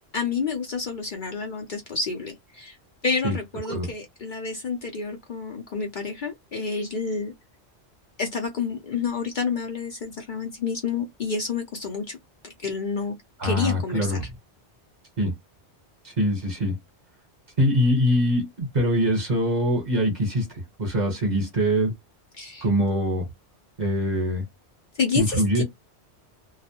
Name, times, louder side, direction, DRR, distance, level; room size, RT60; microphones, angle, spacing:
voice 1, 0.1-2.8 3.0-7.3 8.2-12.2 12.4-13.2 13.4-14.2 22.4-22.7 25.0-25.6, left 5 dB, 55° left, 0.7 m, -29 dB
voice 2, 13.4-14.2 15.2-15.3 16.0-16.8 17.6-21.9 22.6-23.2 23.8-24.4 25.1-25.6, equal, 45° right, 1.0 m, -23 dB
2.3 x 2.0 x 2.8 m
omnidirectional pair, 1.1 m